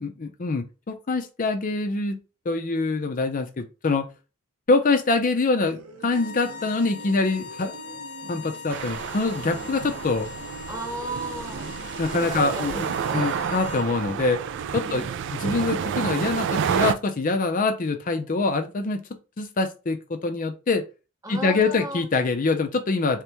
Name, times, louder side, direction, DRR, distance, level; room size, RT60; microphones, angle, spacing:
voice 1, 0.0-2.2 2.5-4.1 4.7-7.8 8.3-10.3 12.0-14.4 14.7-19.0 19.4-20.8 21.3-23.2, left 3 dB, 40° left, 6 dB, 0.5 m, -25 dB
sound 1, 5.6-14.9, right 3 dB, 75° right, 0.8 m, -44 dB
sound 2, 6.1-13.9, left 5 dB, 80° left, 0.8 m, -41 dB
sound 3, 8.7-16.9, right 7 dB, 55° right, 0.3 m, -29 dB
voice 2, 10.7-11.7 12.2-13.3 14.8-15.2 21.2-22.1, right 1 dB, 15° right, 4 dB, 0.7 m, -35 dB
3.6 x 3.0 x 3.4 m, 0.30 s
head